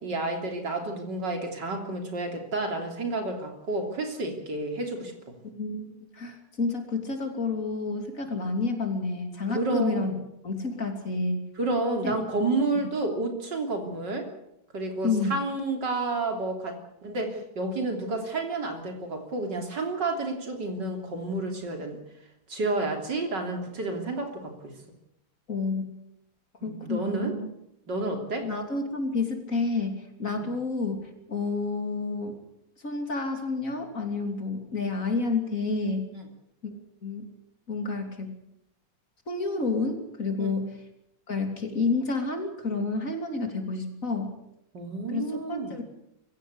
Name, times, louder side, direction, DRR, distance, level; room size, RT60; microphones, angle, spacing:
voice 1, 0.0-5.4 9.5-10.1 11.6-14.3 14.7-22.0 22.5-24.7 26.6-27.4 27.9-28.5 30.3-30.5 36.1-36.2 40.4-40.5 44.7-45.7, right 2 dB, 80° right, 4 dB, 4.0 m, -30 dB
voice 2, 5.5-10.1 10.4-11.5 12.0-12.1 15.0-15.3 25.5-25.9 26.6-27.5 28.4-32.4 32.8-36.1 36.6-37.3 37.7-38.3 39.3-40.8 41.3-44.4 45.1-45.8, left 3 dB, 50° left, 5 dB, 3.5 m, -30 dB
23.0 x 16.0 x 8.2 m, 0.80 s
omnidirectional pair, 1.9 m